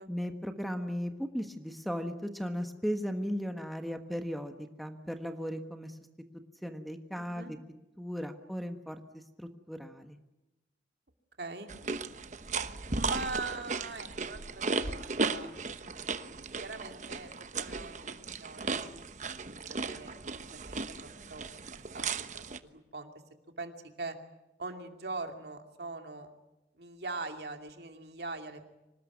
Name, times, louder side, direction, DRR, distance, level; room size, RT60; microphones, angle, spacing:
voice 1, 0.1-6.0 6.6-7.6 8.0-10.2, equal, ahead, 7 dB, 1.3 m, -36 dB
voice 2, 7.2-7.5 11.4-11.7 12.9-15.5 16.6-17.3 17.6-18.9 19.6-20.1 20.4-21.5 21.9-22.4 22.7-23.1 23.6-24.2 24.6-26.3 26.8-28.6, right 3 dB, 60° right, 5 dB, 2.6 m, -41 dB
sound 1, 11.7-22.6, right 4 dB, 40° right, 1.1 m, -36 dB
25.5 x 20.0 x 9.5 m, 0.98 s
head